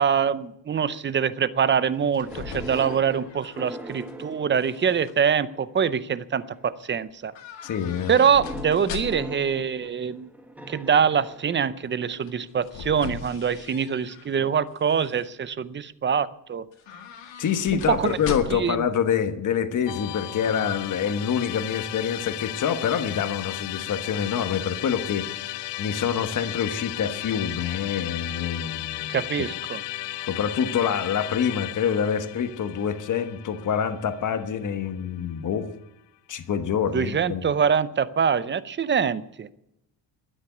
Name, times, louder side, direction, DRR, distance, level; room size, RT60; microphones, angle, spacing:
voice 1, 0.0-7.3 8.1-10.3 10.7-16.7 17.7-18.2 18.5-18.8 29.1-29.8 36.9-39.5, right 7 dB, 25° right, 16 dB, 0.6 m, -24 dB
sound 1, 1.8-4.2 4.5-5.1 7.3-9.4 12.2-14.3 14.8-15.2 16.7-18.8 19.1-19.2, left 8 dB, 90° left, 2.0 m, -39 dB
sound 2, 2.2-5.6 6.3-6.8 8.2-12.3 14.4-14.5, equal, 5° right, 1.3 m, -41 dB
voice 2, 7.6-8.1 17.4-29.2 30.2-35.7 36.3-37.5, left 7 dB, 45° left, 9 dB, 1.3 m, -26 dB
Musical instrument, 19.9-35.0, left 16 dB, 75° left, 0.5 m, -35 dB
12.5 x 9.8 x 9.5 m, 0.83 s
cardioid pair, 150°, 43 cm